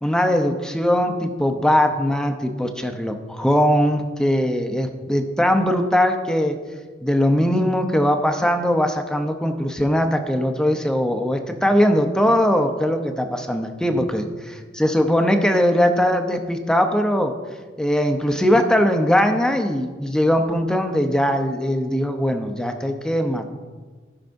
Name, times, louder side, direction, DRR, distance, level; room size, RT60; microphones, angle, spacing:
voice 1, 0.0-6.6 7.0-14.3 14.8-17.3 17.8-23.5, equal, 5° left, 5 dB, 0.7 m, -20 dB
16.5 x 5.7 x 2.6 m, 1.4 s
head